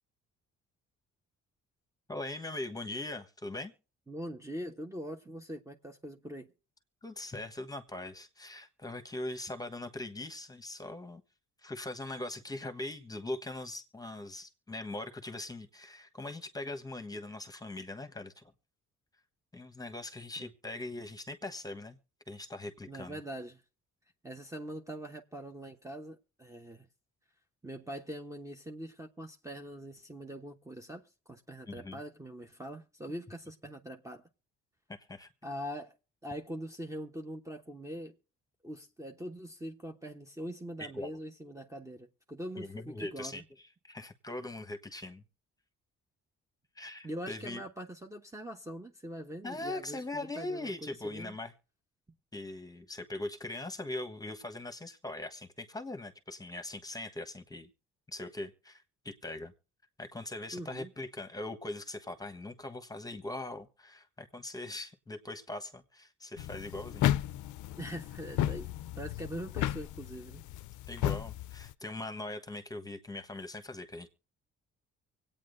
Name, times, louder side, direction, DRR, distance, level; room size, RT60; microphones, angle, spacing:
voice 1, 2.1-3.7 7.0-11.2 11.6-18.5 19.5-22.0 22.3-23.2 31.7-32.0 34.9-35.3 40.9-41.2 42.6-43.4 43.8-45.2 46.7-47.6 49.4-51.5 52.3-57.7 58.1-59.5 60.0-67.1 70.9-74.1, left 2 dB, 10° left, 1.3 m, -41 dB
voice 2, 4.1-6.5 20.4-20.5 22.9-23.6 24.2-26.9 27.6-34.2 35.4-35.9 36.2-38.2 38.6-42.7 43.0-43.4 47.0-51.3 60.5-60.9 67.8-68.7 69.0-70.4, right 1 dB, 10° right, 1.0 m, -43 dB
sound 1, 66.4-71.7, left 12 dB, 75° left, 0.5 m, -34 dB
24.5 x 8.9 x 2.6 m
cardioid pair, 90°, 30 cm